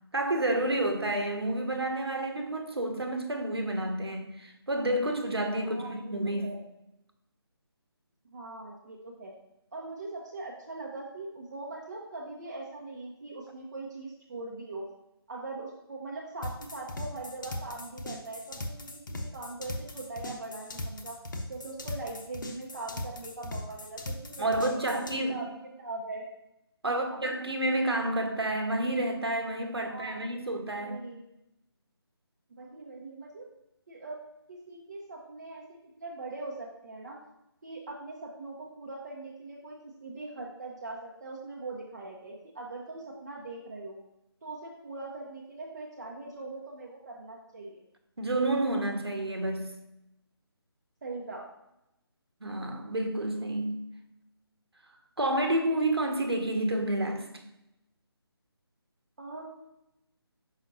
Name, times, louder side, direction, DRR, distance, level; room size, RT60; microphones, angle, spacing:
voice 1, 0.1-6.5 24.4-25.4 26.8-31.0 48.2-49.7 52.4-53.8 55.2-57.3, right 1 dB, 70° right, 1.3 m, -29 dB
voice 2, 5.6-6.6 8.2-9.3 9.7-14.8 15.3-21.2 21.5-25.0 25.3-26.2 26.9-27.2 29.8-30.2 30.8-31.2 32.5-33.5 33.9-37.2 37.6-44.0 44.4-47.8 51.0-51.5 59.2-59.6, right 2 dB, 40° right, 1.0 m, -41 dB
sound 1, 16.4-25.2, left 1 dB, 50° left, 0.9 m, -39 dB
6.1 x 5.7 x 2.7 m
figure-of-eight pair, 150°, 13 cm